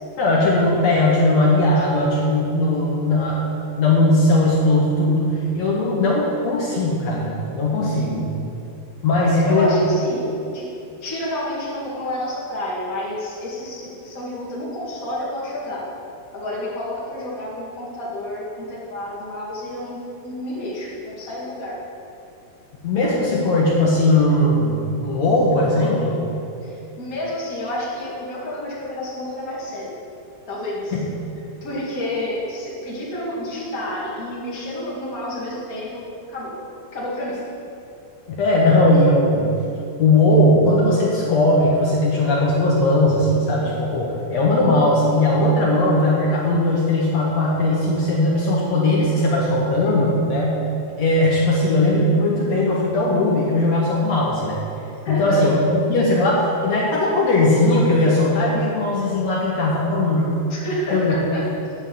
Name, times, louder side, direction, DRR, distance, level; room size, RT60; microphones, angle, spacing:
voice 1, 0.2-8.3 9.0-9.7 22.8-26.2 30.9-31.1 38.3-39.5 40.0-50.6 51.0-54.6 55.1-60.4 60.9-61.1, left 1 dB, 70° left, -5 dB, 1.6 m, -18 dB
voice 2, 9.3-10.3 10.5-10.7 11.0-15.8 16.3-21.8 26.6-29.9 30.5-30.9 31.6-36.5 36.9-37.4 55.0-55.5 60.5-61.4, left 1 dB, 35° left, -6 dB, 1.4 m, -29 dB
9.5 x 6.3 x 7.4 m, 2.7 s
omnidirectional pair, 4.8 m